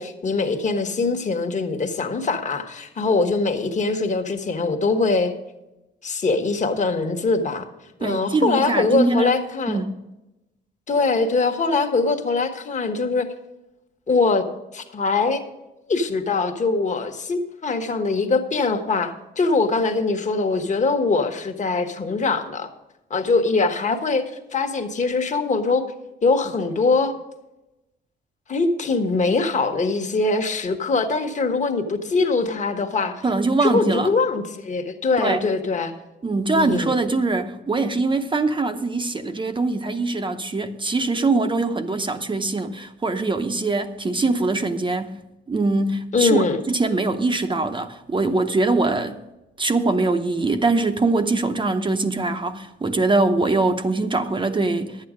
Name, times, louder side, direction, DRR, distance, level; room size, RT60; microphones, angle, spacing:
voice 1, 0.0-5.3 6.0-7.6 8.0-9.8 10.9-13.3 14.1-14.4 14.7-15.4 15.9-22.7 23.1-25.8 26.2-27.1 28.5-33.2 33.6-35.9 36.5-36.9 46.1-46.6, left 3 dB, 35° left, 1.3 m, -22 dB
voice 2, 8.0-9.3 9.7-10.0 33.2-34.1 35.2-35.4 36.2-45.2 45.5-49.2 49.6-55.0, right 3 dB, 25° right, 0.8 m, -22 dB
11.0 x 8.7 x 5.0 m
cardioid pair, 90°, 20 cm